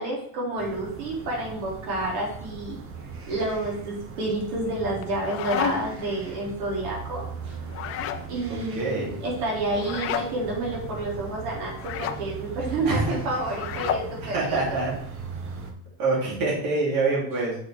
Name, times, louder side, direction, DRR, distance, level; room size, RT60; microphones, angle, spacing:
voice 1, 0.0-2.8 3.3-7.5 8.3-14.8, right 2 dB, 80° right, -4 dB, 3.9 m, -29 dB
sound 1, 0.6-15.7, right 5 dB, 30° right, 1.1 m, -39 dB
sound 2, 5.0-6.0 7.7-8.3 9.8-10.3 11.8-12.2 13.5-14.1, left 9 dB, 30° left, 0.6 m, -30 dB
voice 2, 8.5-9.2 12.9-13.1 14.2-14.9 16.0-17.6, right 3 dB, 50° right, -5 dB, 3.7 m, -26 dB
6.6 x 6.5 x 4.8 m, 0.64 s
cardioid pair, 150°, 45 cm